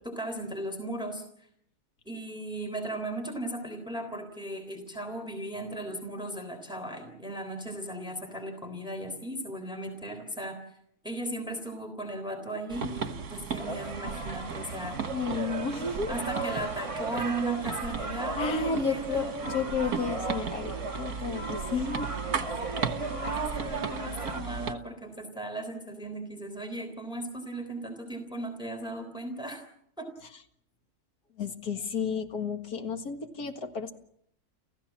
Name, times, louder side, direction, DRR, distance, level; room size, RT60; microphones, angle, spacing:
voice 1, 0.1-1.2 2.1-10.6 11.0-15.0 16.1-19.5 22.5-22.6 22.9-29.6 30.0-30.1, right 1 dB, 5° right, 5 dB, 3.4 m, -36 dB
sound 1, 12.7-24.7, right 6 dB, 75° right, 1.8 m, -36 dB
sound 2, 13.6-24.4, right 3 dB, 20° right, 1.6 m, -37 dB
voice 2, 15.1-16.2 18.4-22.1 31.4-33.9, left 5 dB, 80° left, 5 dB, 2.3 m, -32 dB
30.0 x 15.5 x 7.4 m, 0.72 s
omnidirectional pair, 1.6 m